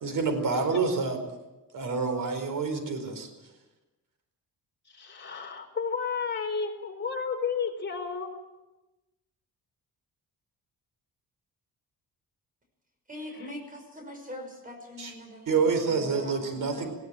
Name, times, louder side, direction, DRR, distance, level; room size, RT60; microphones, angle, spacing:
voice 1, 0.0-1.2 1.7-3.3 15.0-15.1 15.5-16.9, right 4 dB, 65° right, 7 dB, 4.5 m, -27 dB
voice 2, 4.9-8.3 13.2-13.5, left 5 dB, 30° left, 1 dB, 4.5 m, -32 dB
voice 3, 13.1-15.6 15.9-16.9, left 1 dB, 25° right, 4 dB, 5.8 m, -42 dB
19.5 x 17.5 x 8.9 m, 1.1 s
cardioid pair, 135°, 35 cm